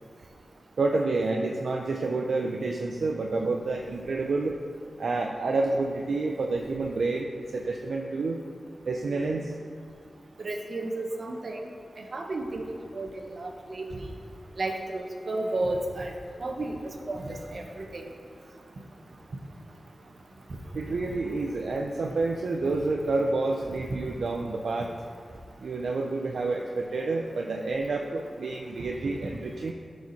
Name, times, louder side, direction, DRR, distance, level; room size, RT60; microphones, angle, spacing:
voice 1, 0.8-4.6 5.0-8.4 8.9-9.5 20.7-24.9 25.6-29.7, right 3 dB, 80° right, 1 dB, 0.5 m, -29 dB
voice 2, 10.4-11.6 12.1-12.6 12.9-13.1 13.4-13.8 14.6-16.1 16.4-16.8 17.1-18.0, right 2 dB, 60° right, 2 dB, 1.1 m, -32 dB
12.5 x 4.8 x 4.1 m, 2.3 s
cardioid pair, 50°, 0 cm